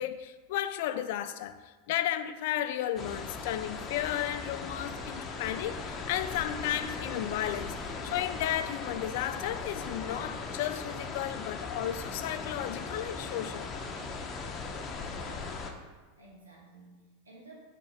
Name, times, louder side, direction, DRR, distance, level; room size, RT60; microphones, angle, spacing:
voice 1, 0.0-13.7, left 12 dB, 60° left, 0.4 m, -34 dB
sound 1, 3.0-15.7, left 4 dB, 30° left, 0.8 m, -38 dB
voice 2, 15.1-15.7 16.2-17.6, right 3 dB, 90° right, 1.8 m, -53 dB
6.8 x 3.7 x 5.3 m
hypercardioid pair, 90°, 0 cm